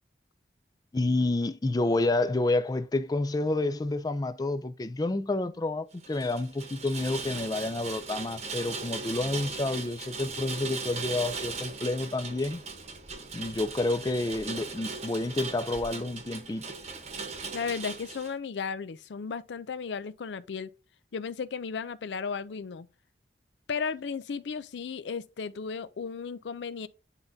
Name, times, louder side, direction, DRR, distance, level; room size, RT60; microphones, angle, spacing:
voice 1, 0.9-12.6 13.3-16.7, left 2 dB, 20° left, 0.4 m, -29 dB
Rain, 6.0-18.3, right 4 dB, 35° right, 0.9 m, -38 dB
voice 2, 17.5-20.7 21.1-22.9 23.7-26.9, left 5 dB, 80° left, 0.4 m, -35 dB
9.8 x 3.5 x 2.7 m
head